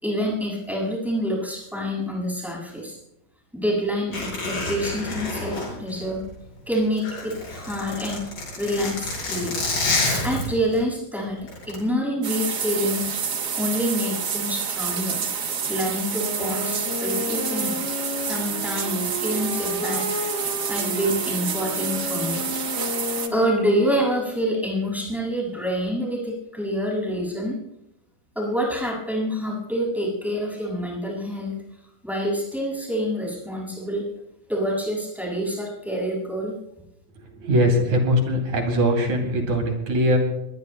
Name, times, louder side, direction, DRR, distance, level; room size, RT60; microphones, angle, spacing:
voice 1, 0.0-3.0 3.5-6.2 6.7-8.2 8.6-9.5 10.2-13.1 13.6-15.3 15.7-17.8 18.2-20.1 20.7-22.4 23.3-27.6 28.4-31.6 32.0-34.1 34.5-36.5, equal, ahead, -3 dB, 6.9 m, -27 dB
Zipper (clothing), 4.1-6.5 6.9-10.8 11.5-11.8, left 2 dB, 75° left, 8.1 m, -28 dB
sound 1, 12.2-23.3, right 6 dB, 80° right, 0.9 m, -28 dB
Wind instrument woodwind instrument, 16.1-24.5, left 2 dB, 55° left, 1.2 m, -33 dB
voice 2, 37.3-40.2, equal, 65° right, 2 dB, 4.2 m, -21 dB
22.5 x 20.5 x 2.3 m, 0.84 s
omnidirectional pair, 3.8 m